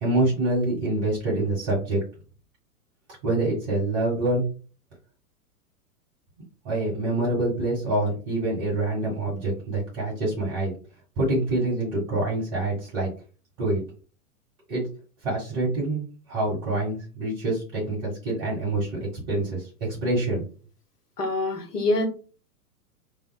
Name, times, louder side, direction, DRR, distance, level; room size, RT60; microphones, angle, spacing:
voice 1, 0.0-2.0 3.2-4.4 6.6-10.7 11.2-13.1 13.6-13.8 14.7-14.9 15.2-19.0 19.3-20.4, right 2 dB, 40° right, -6 dB, 1.4 m, -26 dB
voice 2, 21.2-22.1, left 2 dB, 85° left, 6 dB, 0.8 m, -25 dB
3.4 x 2.4 x 2.2 m, 0.37 s
figure-of-eight pair, 100°, 45 cm